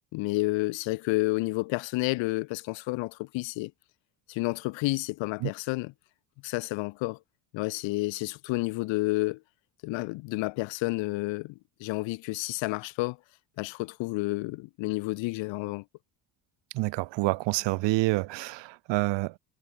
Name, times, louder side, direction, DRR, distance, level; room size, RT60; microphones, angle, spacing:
voice 1, 0.1-3.7 4.3-5.9 6.4-7.2 7.5-9.4 9.8-13.2 13.6-15.8, left 22 dB, 60° left, 1.1 m, -30 dB
voice 2, 16.7-19.4, right 21 dB, 60° right, 1.0 m, -28 dB
supercardioid pair, 85°, 50 cm